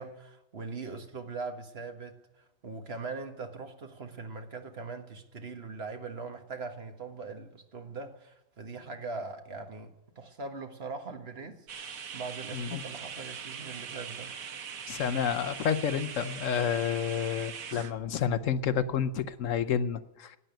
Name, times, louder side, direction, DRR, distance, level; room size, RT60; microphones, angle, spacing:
voice 1, 0.0-14.4, right 4 dB, 50° right, 1.7 m, -41 dB
sound 1, 11.7-17.9, right 7 dB, 90° right, 1.5 m, -41 dB
voice 2, 14.9-20.4, left 8 dB, 70° left, 1.1 m, -30 dB
12.5 x 9.1 x 9.1 m
omnidirectional pair, 1.4 m